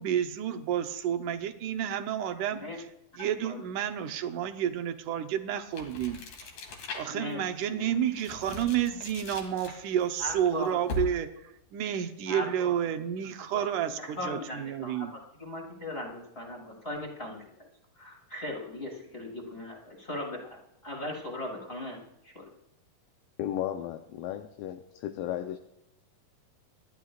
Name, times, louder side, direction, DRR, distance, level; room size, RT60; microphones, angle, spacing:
voice 1, 0.0-2.9 3.2-6.5 6.9-15.2, right 9 dB, 75° right, 7 dB, 2.1 m, -30 dB
sound 1, 5.7-7.3 7.8-11.4, left 2 dB, 65° left, 3.5 m, -40 dB
voice 2, 7.1-7.4 7.7-7.9 10.2-10.8 12.3-12.8 13.5-13.6 14.0-17.7 18.0-22.5, left 1 dB, 15° left, -2 dB, 2.7 m, -38 dB
voice 3, 23.4-25.6, left 11 dB, 80° left, 7 dB, 2.3 m, -34 dB
28.0 x 12.0 x 2.4 m, 0.82 s
omnidirectional pair, 4.2 m